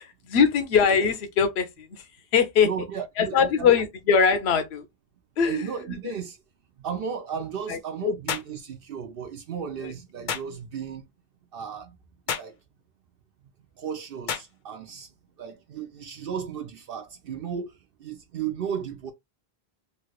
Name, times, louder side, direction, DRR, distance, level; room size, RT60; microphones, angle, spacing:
voice 1, 0.0-2.0 2.3-2.7 3.2-4.8 5.4-5.7 7.7-8.1 9.8-9.9, left 6 dB, 90° left, 0.9 m, -22 dB
voice 2, 2.6-3.7 5.4-6.4 6.8-11.0 11.5-11.9 12.4-12.5 13.8-15.1 15.4-17.7 18.0-19.1, right 7 dB, 70° right, 0.8 m, -34 dB
sound 1, 8.3-8.6 10.3-10.5 12.3-12.6 14.3-14.5, left 7 dB, 60° left, 0.6 m, -30 dB
3.1 x 2.3 x 3.1 m
omnidirectional pair, 1.0 m